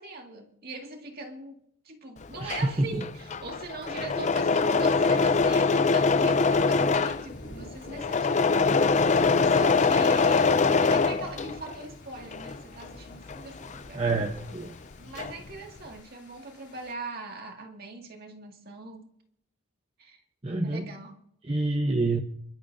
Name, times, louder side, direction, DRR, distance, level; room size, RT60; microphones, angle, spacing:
voice 1, 0.0-14.1 15.0-19.1 20.0-20.2 20.6-21.2, right 3 dB, 45° right, 2.2 m, -41 dB
Engine / Mechanisms, 2.2-11.8 12.2-14.5 14.8-15.5, left 4 dB, 35° left, 0.5 m, -24 dB
voice 2, 2.4-3.0 13.9-14.8 20.4-20.9 21.4-22.2, right 2 dB, 30° right, 0.9 m, -27 dB
sound 1, 6.0-16.9, left 1 dB, 55° left, 3.0 m, -51 dB
30.0 x 12.0 x 2.7 m
head